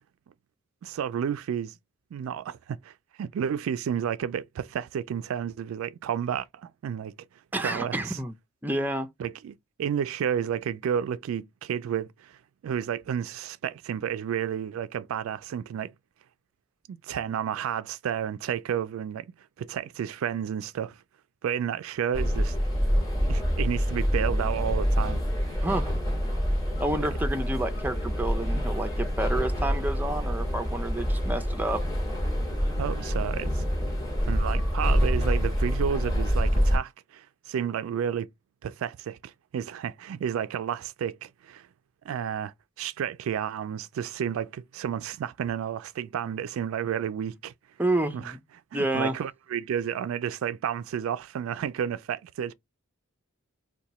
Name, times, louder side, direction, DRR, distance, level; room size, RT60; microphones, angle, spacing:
voice 1, 0.8-1.7 2.1-7.1 7.6-8.2 9.2-12.4 12.6-15.9 16.9-21.0 21.4-22.6 23.3-25.6 27.0-27.1 32.8-33.7 34.3-38.3 38.6-41.7 42.0-47.5 48.1-48.3 48.7-52.5, right 8 dB, 85° right, 0.3 m, -31 dB
voice 2, 7.5-8.3 8.6-9.1 25.6-25.9 26.8-31.8 47.8-48.4 48.7-49.2, right 1 dB, 10° right, 0.4 m, -29 dB
sound 1, 22.1-36.8, equal, 20° left, 1.5 m, -26 dB
2.8 x 2.2 x 4.1 m
head